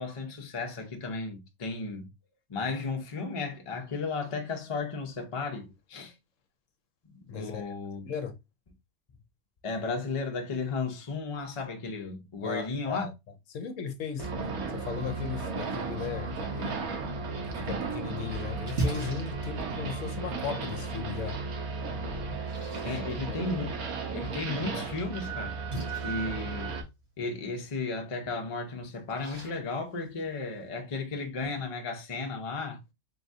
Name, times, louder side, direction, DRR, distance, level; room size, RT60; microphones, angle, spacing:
voice 1, 0.0-2.1 2.5-6.1 7.1-8.1 9.6-13.1 16.0-16.1 22.8-23.8 24.1-25.6 26.0-26.8 27.2-32.8, left 3 dB, 35° left, 0.6 m, -34 dB
voice 2, 7.3-7.7 8.0-8.3 12.4-13.1 13.5-14.3 14.7-16.9 17.4-21.4 22.8-23.0 23.3-23.4, left 6 dB, 70° left, 1.0 m, -37 dB
sound 1, 14.2-26.8, right 4 dB, 85° right, 1.4 m, -35 dB
Splash splatter, 17.7-30.7, right 1 dB, 50° right, 1.9 m, -42 dB
3.9 x 3.6 x 2.6 m
omnidirectional pair, 1.5 m